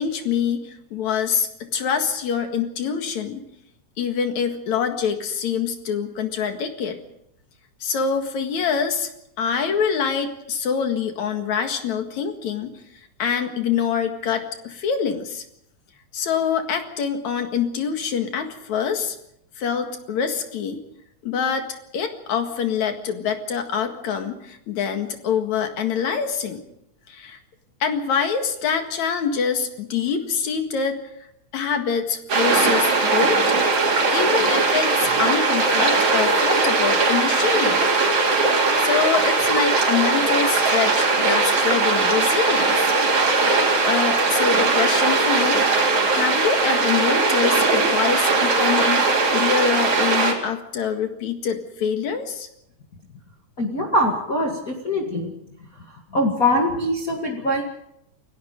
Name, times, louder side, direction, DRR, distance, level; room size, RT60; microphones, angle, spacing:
voice 1, 0.0-3.4 4.0-7.0 7.8-9.1 9.4-12.7 13.2-15.4 16.1-19.2 19.6-20.8 21.2-26.6 27.1-27.4 27.8-31.0 31.5-33.5 34.1-37.8 38.3-42.9 43.6-45.7 46.1-52.5, left 7 dB, 75° left, 6 dB, 3.2 m, -25 dB
sound 1, 32.3-50.3, right 3 dB, 70° right, 4.8 m, -19 dB
voice 2, 53.6-55.3 56.1-57.6, left 1 dB, 30° left, -1 dB, 2.4 m, -22 dB
28.5 x 17.5 x 5.3 m, 0.77 s
omnidirectional pair, 3.4 m